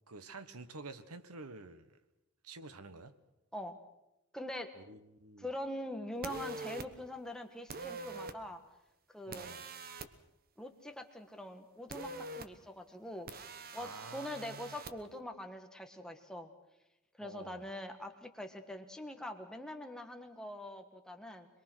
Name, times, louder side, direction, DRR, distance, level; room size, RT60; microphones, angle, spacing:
voice 1, 0.1-2.0 2.4-3.1 4.7-5.5 9.3-9.6 13.8-14.7 17.2-17.7, right 3 dB, 80° right, 12 dB, 1.3 m, -49 dB
voice 2, 4.3-4.7 5.4-8.6 9.1-9.5 10.6-13.3 13.7-16.5 17.2-21.5, left 1 dB, 5° left, 5 dB, 1.5 m, -43 dB
sound 1, 6.2-6.9 7.7-8.4 9.3-10.1 11.9-12.5 13.3-14.9, right 3 dB, 45° right, 1.1 m, -44 dB
23.5 x 22.5 x 6.3 m, 0.93 s
head